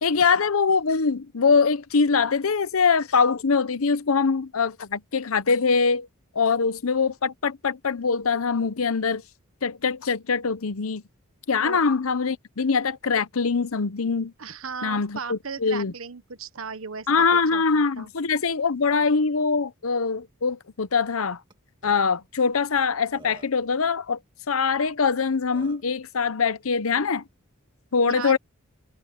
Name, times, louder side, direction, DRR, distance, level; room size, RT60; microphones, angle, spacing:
voice 1, 0.0-6.1 6.3-9.2 9.6-11.0 11.5-14.3 14.8-15.9 17.1-21.4 21.8-24.2 24.5-27.2 27.9-28.4, left 5 dB, 85° left, 0.8 m, -23 dB
voice 2, 14.4-17.6 18.0-18.1 28.1-28.4, right 5 dB, 75° right, 1.3 m, -36 dB
Burping eructation, 21.5-21.6 21.8-22.0 22.8-22.9 23.1-23.7 25.0-25.1 25.5-25.9, right 2 dB, 25° right, 1.8 m, -48 dB
head